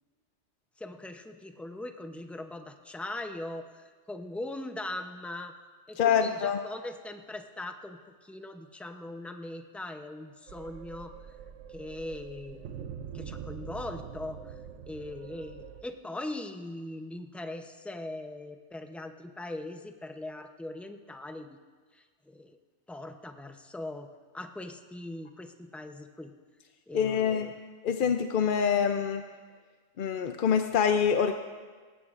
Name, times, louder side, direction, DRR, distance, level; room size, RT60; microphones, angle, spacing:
voice 1, 0.8-5.5 5.9-11.1 11.7-14.5 14.9-21.5 21.9-22.6 22.9-24.1 24.3-26.3 26.9-27.5, left 2 dB, ahead, 5 dB, 0.4 m, -40 dB
voice 2, 6.0-6.6 26.9-27.5 27.8-29.2 30.0-31.3, left 7 dB, 55° left, 7 dB, 0.6 m, -25 dB
sound 1, 10.5-15.8, right 8 dB, 90° right, 1.0 m, -44 dB
18.5 x 16.5 x 2.5 m, 1.5 s
omnidirectional pair, 1.2 m